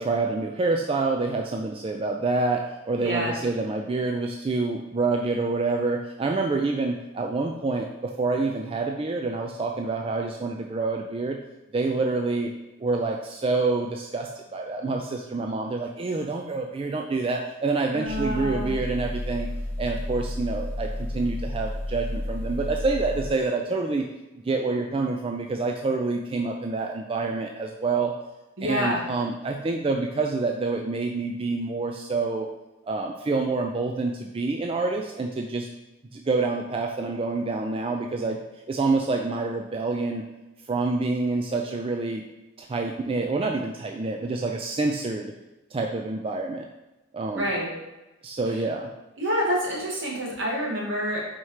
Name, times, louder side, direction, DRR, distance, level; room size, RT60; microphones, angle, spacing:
voice 1, 0.0-11.4 11.7-12.5 12.8-19.5 19.8-24.1 24.4-28.1 28.6-32.5 32.9-35.7 36.1-38.4 38.7-40.2 40.7-42.2 42.6-45.3 45.7-46.7 47.1-47.5 48.2-48.9, right 3 dB, 30° right, 2 dB, 0.4 m, -27 dB
voice 2, 3.0-3.4 17.9-18.7 28.6-29.0 47.3-47.7 49.2-51.3, equal, 70° right, -3 dB, 1.8 m, -27 dB
sound 1, 18.1-23.3, left 1 dB, 10° left, 0.8 m, -32 dB
4.5 x 4.3 x 4.8 m, 1.0 s
head